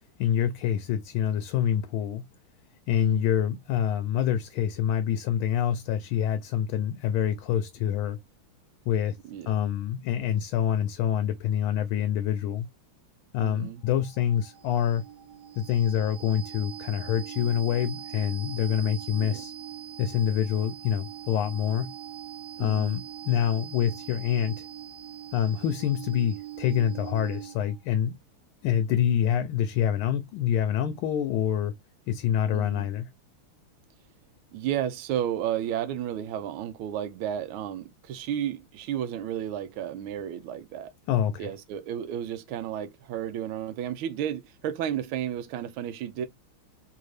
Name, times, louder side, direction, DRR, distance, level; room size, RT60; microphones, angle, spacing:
voice 1, 0.2-2.3 2.9-8.2 8.9-9.2 9.5-12.7 13.3-15.0 15.5-19.5 20.0-21.9 22.6-24.6 25.3-28.2 28.6-31.7 32.1-33.1 41.1-41.5, left 9 dB, 80° left, 1.3 m, -26 dB
voice 2, 2.9-3.3 9.2-9.5 13.4-13.8 19.2-19.4 22.6-23.0 32.5-32.9 34.5-40.9 41.4-46.3, right 10 dB, 80° right, 1.5 m, -32 dB
sound 1, 13.9-27.8, right 11 dB, 65° right, 1.2 m, -42 dB
3.9 x 2.8 x 3.1 m
omnidirectional pair, 2.3 m